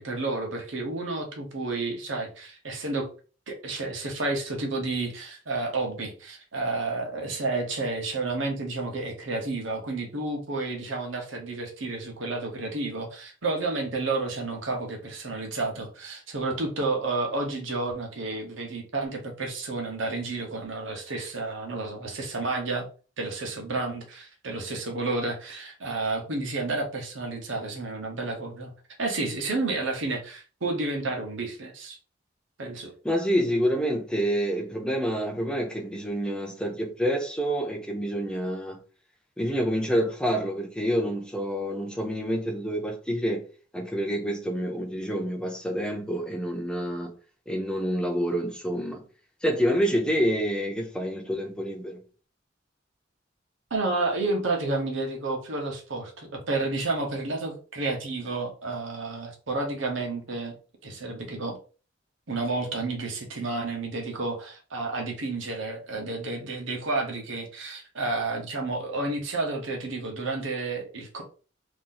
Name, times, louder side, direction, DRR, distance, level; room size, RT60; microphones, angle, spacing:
voice 1, 0.0-3.1 3.5-22.8 23.2-28.7 29.0-32.0 32.6-32.9 53.7-60.6 60.8-61.6 62.3-71.2, right 3 dB, 90° right, 1.1 m, -31 dB
voice 2, 33.0-38.8 39.4-43.4 43.7-47.1 47.5-49.0 49.4-52.0, equal, 5° left, 0.6 m, -27 dB
3.0 x 2.7 x 3.9 m
head